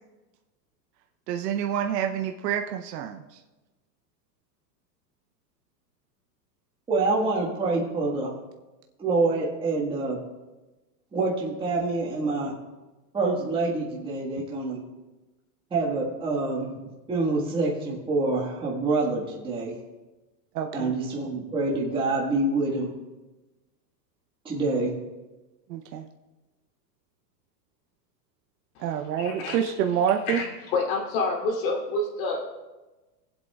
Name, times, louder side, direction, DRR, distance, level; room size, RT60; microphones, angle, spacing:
voice 1, 1.3-3.4 20.5-20.9 25.7-26.1 28.8-30.4, right 9 dB, 75° right, 4 dB, 0.8 m, -27 dB
voice 2, 6.9-8.3 9.0-10.2 11.1-12.5 13.1-14.8 15.7-19.8 20.7-22.9 24.4-24.9, right 3 dB, 10° right, -5 dB, 1.6 m, -26 dB
voice 3, 29.2-29.6 30.2-30.5 30.7-32.4, left 3 dB, 55° left, -2 dB, 3.0 m, -28 dB
20.5 x 8.0 x 2.4 m, 1.1 s
supercardioid pair, 145°, 49 cm